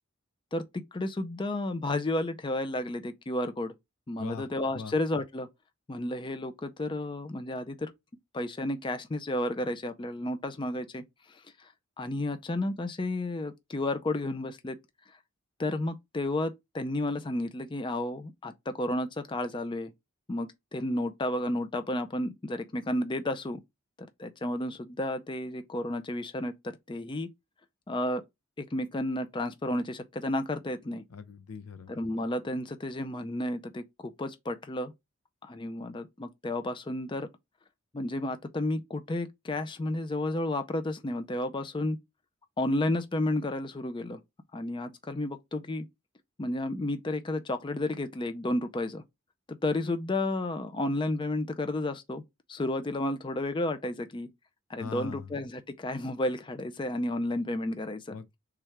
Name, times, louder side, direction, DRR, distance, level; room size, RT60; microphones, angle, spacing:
voice 1, 0.5-3.7 4.1-5.5 5.9-7.9 8.3-11.0 12.0-14.8 15.6-19.9 20.3-23.6 24.0-27.3 27.9-28.2 28.6-31.0 31.9-34.9 35.4-37.3 37.9-42.0 42.6-44.2 44.5-45.9 46.4-49.0 49.5-52.2 52.5-54.3 54.7-58.0, left 1 dB, 20° left, 0.4 m, -32 dB
voice 2, 4.2-4.5 4.7-4.9 31.1-31.9 54.8-55.3 58.1-58.4, left 4 dB, 90° left, 0.5 m, -40 dB
3.6 x 3.3 x 4.4 m
head